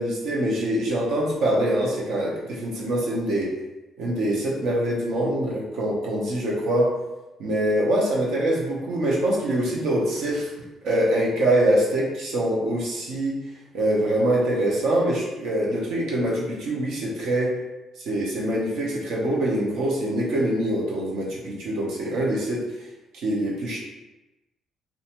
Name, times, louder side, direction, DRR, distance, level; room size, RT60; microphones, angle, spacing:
voice 1, 0.0-3.5 4.0-6.9 7.4-10.5 10.8-13.4 13.7-17.5 18.0-22.6 23.2-23.8, right 1 dB, 75° right, -3 dB, 0.7 m, -24 dB
2.6 x 2.2 x 2.9 m, 1.1 s
cardioid pair, 115°, 0 cm